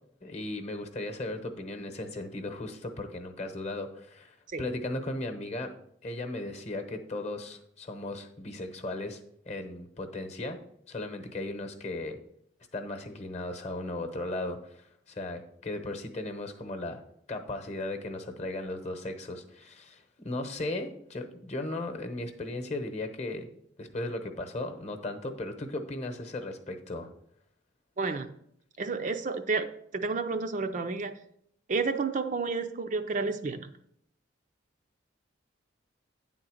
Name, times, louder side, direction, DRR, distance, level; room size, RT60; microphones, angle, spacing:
voice 1, 0.2-5.7 6.0-9.2 9.5-10.6 10.9-12.2 12.7-17.0 17.3-23.5 23.8-27.1, left 2 dB, 35° left, 7 dB, 0.9 m, -36 dB
voice 2, 28.0-28.3 28.8-29.7 29.9-31.1 31.7-33.7, right 4 dB, 40° right, 7 dB, 0.4 m, -30 dB
9.3 x 3.8 x 6.2 m, 0.71 s
head